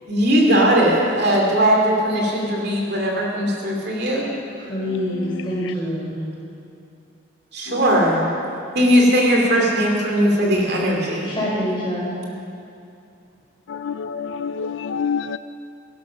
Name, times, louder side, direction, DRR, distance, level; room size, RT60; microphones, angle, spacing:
voice 1, 0.1-4.3 7.5-8.3 8.7-11.4, equal, 50° right, -1 dB, 2.7 m, -19 dB
voice 2, 4.6-6.2 11.2-12.1, equal, 25° left, -6 dB, 4.9 m, -26 dB
voice 3, 13.7-15.4, left 6 dB, 65° left, 12 dB, 0.3 m, -27 dB
17.0 x 12.5 x 5.8 m, 2.5 s
head